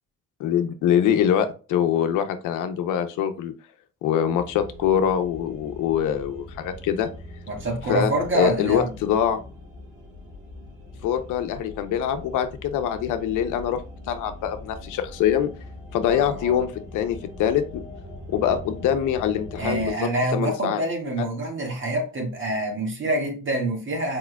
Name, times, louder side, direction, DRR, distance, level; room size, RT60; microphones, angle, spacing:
voice 1, 0.4-3.5 4.0-7.1 7.9-9.4 11.0-13.8 14.1-15.5 15.9-16.7 16.9-17.8 18.3-19.9 20.3-20.8 21.2-21.3, left 9 dB, 85° left, 9 dB, 0.7 m, -24 dB
sound 1, 4.3-19.9, left 2 dB, 85° right, 2.5 m, -41 dB
voice 2, 7.5-8.9 16.0-16.6 19.6-24.2, right 1 dB, 40° right, 1 dB, 1.8 m, -26 dB
4.8 x 4.4 x 2.2 m, 0.35 s
cardioid pair, 90°, 30 cm